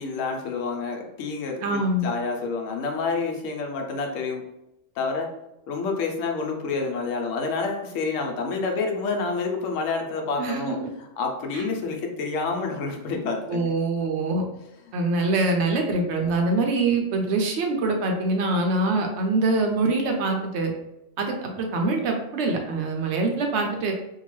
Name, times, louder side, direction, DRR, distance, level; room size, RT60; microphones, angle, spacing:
voice 1, 0.0-4.4 5.0-5.3 5.7-10.8 11.2-13.7, left 4 dB, 80° left, 2 dB, 1.0 m, -28 dB
voice 2, 1.6-2.1 10.4-10.9 11.5-11.6 13.5-14.4 14.9-20.7 21.2-23.9, right 2 dB, 70° right, 3 dB, 0.8 m, -24 dB
2.7 x 2.2 x 3.0 m, 0.87 s
omnidirectional pair, 1.3 m